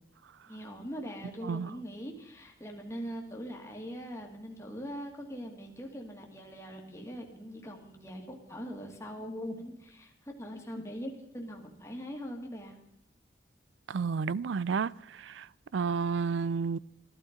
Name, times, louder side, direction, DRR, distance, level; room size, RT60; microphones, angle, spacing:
voice 1, 0.5-12.8, equal, 15° left, 1.8 m, -42 dB
voice 2, 13.9-16.8, right 5 dB, 90° right, 0.4 m, -31 dB
14.5 x 12.0 x 5.1 m
head